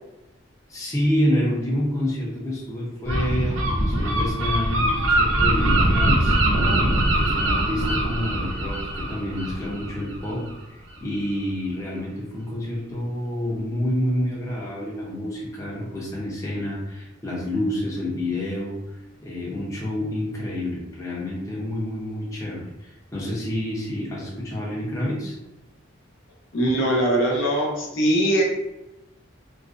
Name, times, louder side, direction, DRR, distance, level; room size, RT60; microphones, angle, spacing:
voice 1, 0.7-6.4 7.1-25.4, left 1 dB, 15° left, -5 dB, 0.5 m, -28 dB
Gull seagull, 3.0-10.6, right 1 dB, 80° right, 0.5 m, -22 dB
voice 2, 26.5-28.4, right 1 dB, 80° left, -2 dB, 0.6 m, -21 dB
2.4 x 2.1 x 2.4 m, 0.93 s
head